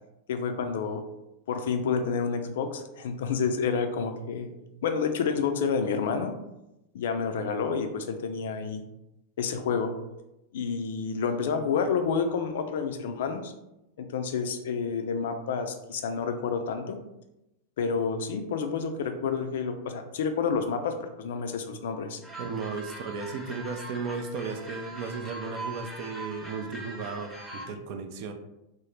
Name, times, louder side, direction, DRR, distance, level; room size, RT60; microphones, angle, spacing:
voice 1, 0.3-1.0 1.5-4.5 4.8-6.3 6.9-8.8 9.4-9.9 10.5-13.5 14.0-17.0 17.8-22.2, left 5 dB, 60° left, 7 dB, 0.4 m, -29 dB
sound 1, 22.2-27.7, right 1 dB, 5° right, 0.8 m, -41 dB
voice 2, 22.4-28.3, right 5 dB, 45° right, 7 dB, 0.4 m, -35 dB
3.6 x 2.0 x 3.2 m, 0.91 s
figure-of-eight pair, 90°, 0 cm